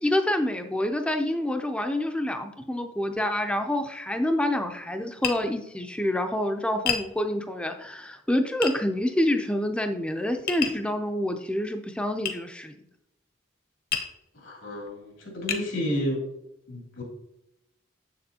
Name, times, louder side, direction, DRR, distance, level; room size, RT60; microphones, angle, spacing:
voice 1, 0.0-12.8, left 1 dB, 5° left, 6 dB, 0.4 m, -27 dB
Tap, 5.2-5.4 6.9-7.1 8.6-8.8 10.5-10.8 12.3-12.4 13.9-14.2 14.9-15.0 15.5-15.7, left 8 dB, 50° left, 0.8 m, -29 dB
voice 2, 14.3-16.2 16.7-17.0, equal, 90° left, -1 dB, 2.6 m, -31 dB
7.2 x 6.7 x 2.8 m, 0.82 s
head